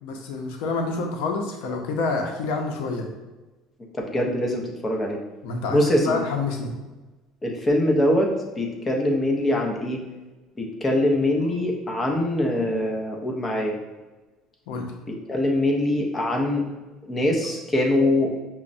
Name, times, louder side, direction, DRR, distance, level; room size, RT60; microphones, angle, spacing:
voice 1, 0.0-3.1 5.4-6.8 14.7-14.9, left 3 dB, 80° left, 3 dB, 0.5 m, -27 dB
voice 2, 3.9-5.2 5.7-6.2 7.4-10.0 10.6-13.8 15.3-16.6 17.1-18.3, left 1 dB, 15° left, 0 dB, 0.5 m, -23 dB
5.6 x 2.0 x 2.5 m, 1.2 s
cardioid pair, 170°, 0 cm